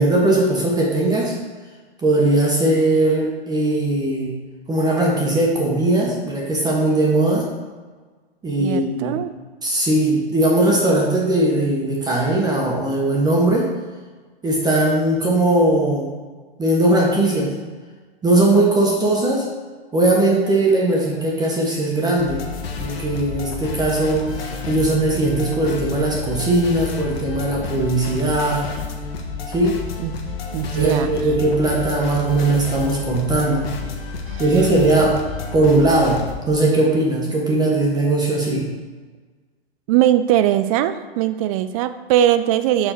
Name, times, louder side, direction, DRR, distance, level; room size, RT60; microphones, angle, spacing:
voice 1, 0.0-1.3 2.0-4.3 4.7-7.4 8.4-9.1 9.6-13.7 14.4-16.1 16.6-17.5 18.2-19.5 19.9-22.4 22.8-28.7 29.5-29.7 30.7-33.7 34.4-35.2 35.5-36.2 36.5-38.7, right 2 dB, 15° right, -2 dB, 1.1 m, -19 dB
voice 2, 8.6-9.3 30.0-31.1 34.3-34.4 39.9-42.9, right 11 dB, 35° right, 12 dB, 0.4 m, -20 dB
sound 1, 22.2-36.3, left 4 dB, 70° left, 1.4 m, -30 dB
6.3 x 4.7 x 4.4 m, 1.4 s
hypercardioid pair, 125°, 31 cm